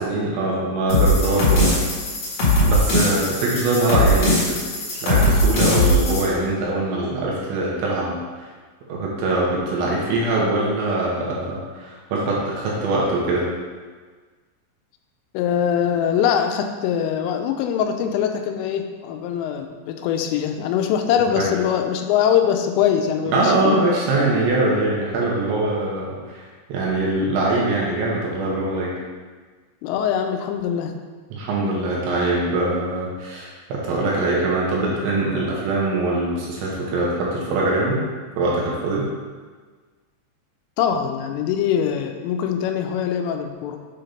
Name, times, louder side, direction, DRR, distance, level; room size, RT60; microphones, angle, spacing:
voice 1, 0.0-1.8 2.6-4.6 4.9-8.5 8.9-13.5 21.4-21.5 23.3-26.4 26.7-28.9 31.3-38.0 38.4-39.0, right 2 dB, 75° right, -4 dB, 3.1 m, -22 dB
sound 1, 0.9-6.2, left 1 dB, 50° left, 1.9 m, -19 dB
voice 2, 15.3-23.8 29.8-30.9 40.8-43.8, left 8 dB, 85° left, 6 dB, 3.1 m, -22 dB
7.7 x 2.9 x 5.1 m, 1.4 s
omnidirectional pair, 5.7 m